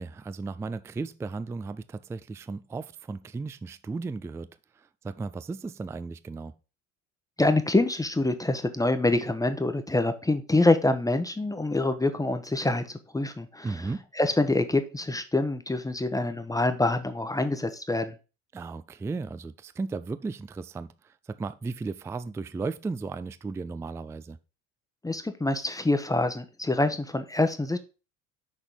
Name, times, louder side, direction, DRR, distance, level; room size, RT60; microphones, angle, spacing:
voice 1, 0.0-4.5 4.8-6.5 13.6-14.1 18.5-24.4, right 4 dB, 10° right, 0.3 m, -35 dB
voice 2, 7.4-13.9 14.1-18.1 25.0-27.8, left 2 dB, 10° left, 0.9 m, -26 dB
6.3 x 4.2 x 5.2 m
hypercardioid pair, 70°, 36 cm